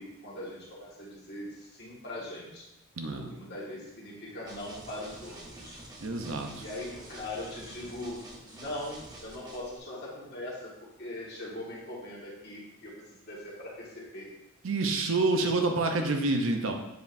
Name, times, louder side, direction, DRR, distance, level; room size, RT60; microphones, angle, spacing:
voice 1, 0.0-2.7 3.3-5.8 6.6-8.2 8.5-12.9 13.2-14.3, left 1 dB, 45° left, -5 dB, 1.8 m, -41 dB
voice 2, 3.0-3.3 6.0-6.6 14.6-16.7, right 3 dB, 60° right, 4 dB, 0.6 m, -28 dB
sound 1, 4.5-9.8, right 1 dB, 15° right, 0.8 m, -48 dB
7.8 x 5.0 x 2.6 m, 0.91 s
head